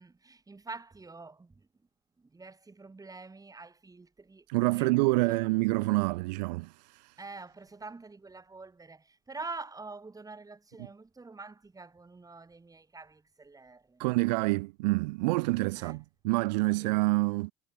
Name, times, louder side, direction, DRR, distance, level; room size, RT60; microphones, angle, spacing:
voice 1, 0.0-1.7 2.2-5.0 5.3-5.4 7.2-14.0 15.7-16.0 16.7-16.9, right 3 dB, 15° right, 3.4 m, -46 dB
voice 2, 4.5-6.7 14.0-17.5, right 24 dB, 80° right, 0.5 m, -27 dB
hypercardioid pair, 85°, 21 cm